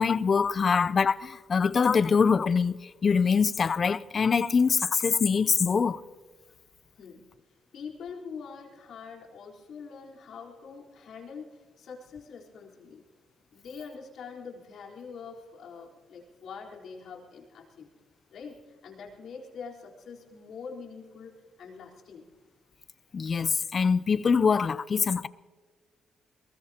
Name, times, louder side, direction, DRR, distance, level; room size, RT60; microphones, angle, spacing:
voice 1, 0.0-6.0 23.1-25.3, left 5 dB, 40° left, 0.5 m, -24 dB
voice 2, 7.7-13.0 13.5-17.9 18.3-22.3, left 5 dB, 65° left, 4.0 m, -44 dB
22.5 x 20.5 x 2.9 m
cardioid pair, 90°, 0 cm